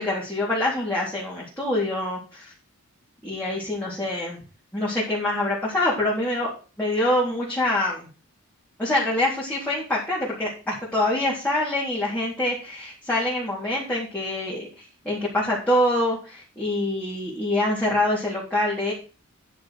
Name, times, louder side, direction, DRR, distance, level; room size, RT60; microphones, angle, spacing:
voice 1, 0.0-2.5 3.2-4.4 4.7-6.5 6.8-8.1 8.8-14.7 15.0-18.9, left 1 dB, 10° left, -7 dB, 3.7 m, -25 dB
10.5 x 6.4 x 6.5 m, 0.34 s
head